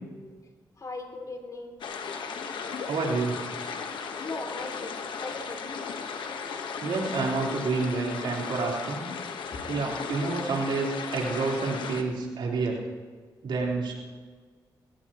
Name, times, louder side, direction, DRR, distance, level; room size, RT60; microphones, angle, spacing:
voice 1, 0.8-1.7 4.2-4.9 5.2-5.6 9.6-9.7, left 3 dB, 45° left, 3 dB, 3.0 m, -38 dB
sound 1, 1.8-12.0, left 5 dB, 85° left, 1.3 m, -36 dB
voice 2, 2.8-3.4 6.8-9.0 9.7-12.8 13.4-14.0, right 3 dB, 80° right, -3 dB, 4.0 m, -29 dB
20.5 x 16.5 x 3.1 m, 1.6 s
cardioid pair, 70°, 8 cm